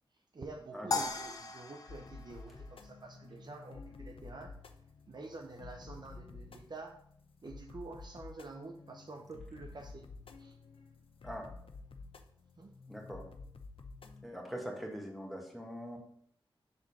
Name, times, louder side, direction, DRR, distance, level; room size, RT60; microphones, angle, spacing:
voice 1, 0.3-4.5 5.1-7.0 7.4-10.1 10.4-10.6 12.6-12.7, right 3 dB, 50° right, 3 dB, 0.7 m, -48 dB
sound 1, 0.9-3.3, left 3 dB, 40° left, 0.7 m, -38 dB
sound 2, 1.9-14.3, left 4 dB, 80° left, 0.6 m, -51 dB
voice 2, 12.9-13.3 14.2-16.0, equal, ahead, 0 dB, 1.6 m, -42 dB
6.7 x 3.9 x 4.1 m, 0.62 s
wide cardioid pair, 70°, 9 cm